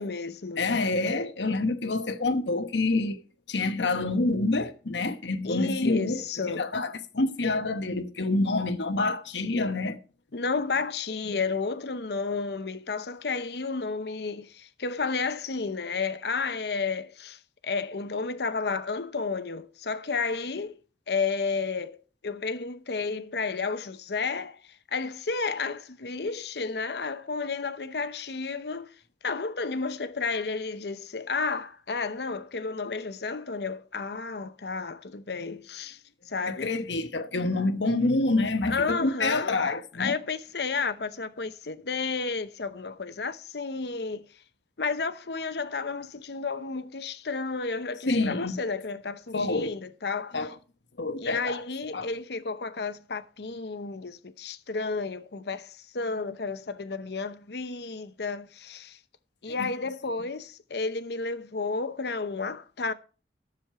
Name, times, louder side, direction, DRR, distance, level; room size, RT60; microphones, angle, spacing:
voice 1, 0.0-0.6 5.4-6.7 10.3-20.8 21.1-24.6 24.9-28.9 29.2-36.0 36.3-36.8 38.7-39.5 40.0-44.3 44.8-50.4 51.2-59.0 59.4-62.9, left 4 dB, 65° left, 0.8 m, -32 dB
voice 2, 0.6-3.2 3.5-10.0 11.3-11.4 36.5-40.1 48.1-48.6 49.3-49.7 50.3-50.5 51.0-51.6 51.9-52.1 59.6-59.7, left 2 dB, 85° left, 1.1 m, -27 dB
10.5 x 7.2 x 4.7 m
head